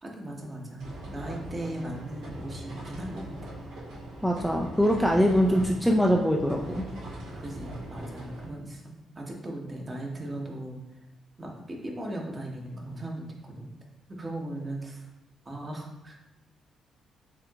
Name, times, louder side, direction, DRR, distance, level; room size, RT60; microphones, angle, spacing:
voice 1, 0.0-3.6 7.3-10.8 11.4-13.7 14.1-15.1 15.4-16.2, right 1 dB, 30° right, 0 dB, 1.2 m, -38 dB
sound 1, 0.8-8.5, right 1 dB, 65° right, 1.1 m, -40 dB
voice 2, 4.2-6.8, equal, ahead, 0 dB, 0.5 m, -23 dB
5.8 x 3.6 x 2.4 m, 0.99 s
figure-of-eight pair, 40°, 0 cm